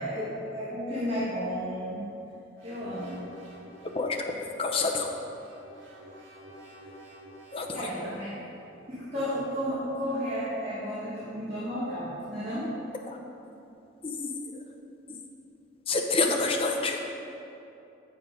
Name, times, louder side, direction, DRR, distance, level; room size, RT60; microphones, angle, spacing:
voice 1, 0.0-2.0 2.6-3.2 7.7-8.3 8.9-12.7, equal, 30° right, -11 dB, 1.5 m, -32 dB
sound 1, 2.6-4.2 4.9-8.6, right 1 dB, 80° right, 1.6 m, -50 dB
voice 2, 3.9-5.1 7.5-7.9 13.1-13.2 14.0-14.6 15.1-15.2 15.9-17.0, left 3 dB, 30° left, 2 dB, 0.6 m, -28 dB
7.3 x 6.1 x 5.0 m, 2.8 s
head